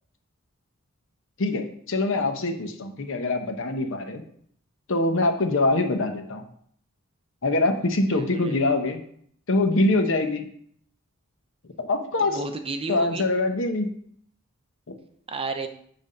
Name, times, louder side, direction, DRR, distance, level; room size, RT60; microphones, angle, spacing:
voice 1, 1.4-4.2 4.9-6.5 7.4-9.0 9.5-10.5 11.8-12.4 12.9-13.9 14.9-15.0, left 2 dB, 65° left, 6 dB, 0.9 m, -24 dB
voice 2, 8.1-8.6 12.2-13.3 15.3-15.7, right 3 dB, 25° right, 7 dB, 0.6 m, -32 dB
7.8 x 3.5 x 5.3 m, 0.64 s
head